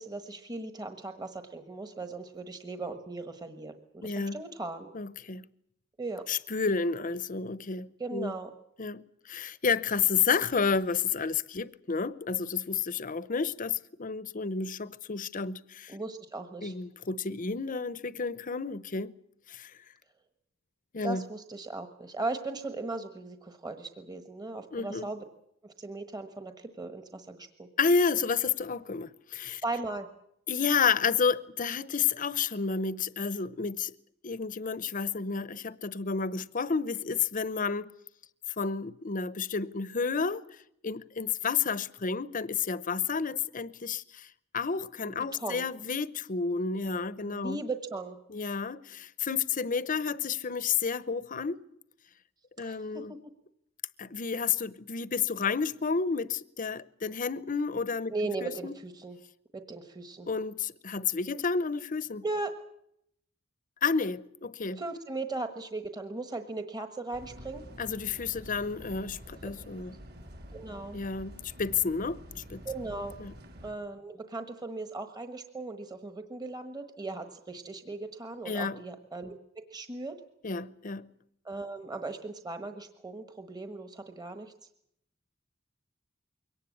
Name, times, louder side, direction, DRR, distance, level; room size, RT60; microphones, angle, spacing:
voice 1, 0.0-4.9 6.0-6.2 8.0-8.5 15.9-16.7 21.0-25.2 25.6-27.7 29.6-30.1 45.1-45.6 47.3-48.2 52.6-53.2 58.1-59.2 59.5-60.3 62.2-62.5 64.8-67.6 70.5-71.0 72.6-73.1 73.6-80.1 81.4-84.5, right 3 dB, 20° right, 1.3 m, -38 dB
voice 2, 4.0-4.4 4.9-5.4 6.3-8.3 8.8-16.0 16.6-19.1 19.5-19.7 20.9-21.2 24.7-25.1 27.8-29.6 30.5-33.9 34.2-37.9 38.6-40.4 40.8-44.3 44.5-47.6 48.3-51.6 52.6-53.1 54.0-58.1 58.4-58.7 60.3-62.2 63.8-64.8 67.8-69.9 70.9-72.6 73.2-73.3 78.5-78.8 80.4-81.1, left 5 dB, 45° left, 0.8 m, -31 dB
sound 1, 67.1-73.7, equal, 55° right, 3.4 m, -48 dB
23.0 x 18.0 x 8.5 m
head